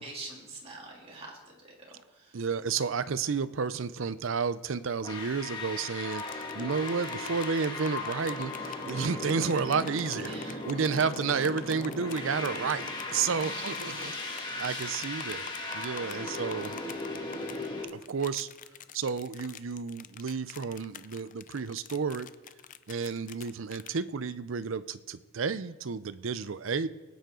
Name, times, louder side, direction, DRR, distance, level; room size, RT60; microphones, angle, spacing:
voice 1, 0.0-1.8 2.1-2.4 10.2-10.7 13.2-13.7 16.0-16.3, right 2 dB, 30° right, -3 dB, 3.0 m, -45 dB
voice 2, 2.3-16.8 17.9-18.5 18.9-22.3 22.9-26.9, right 5 dB, 70° right, 15 dB, 0.5 m, -31 dB
sound 1, 5.0-17.9, left 2 dB, 20° left, 1.7 m, -37 dB
sound 2, 6.1-24.0, left 9 dB, 40° left, 0.5 m, -46 dB
21.0 x 9.3 x 3.8 m, 1.3 s
head